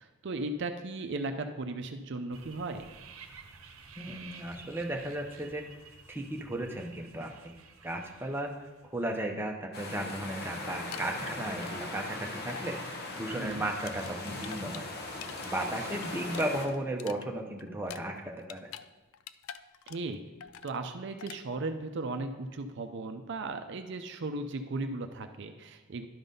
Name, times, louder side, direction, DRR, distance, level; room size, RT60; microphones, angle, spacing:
voice 1, 0.0-2.9 13.4-13.7 19.9-20.2 20.6-26.1, right 2 dB, 60° right, 7 dB, 0.5 m, -36 dB
sound 1, 2.3-9.2, right 5 dB, 85° right, 0.8 m, -52 dB
voice 2, 4.0-5.6 6.1-7.5 7.8-18.7, right 1 dB, 10° right, 1 dB, 0.7 m, -35 dB
sound 2, 9.7-16.7, left 2 dB, 50° left, 0.9 m, -39 dB
sound 3, 10.9-12.2 12.5-12.7 13.0-15.5 15.8-18.9 19.1-20.1 20.4-20.8 21.2-21.4, left 9 dB, 90° left, 0.3 m, -46 dB
11.0 x 4.0 x 5.3 m, 1.2 s
head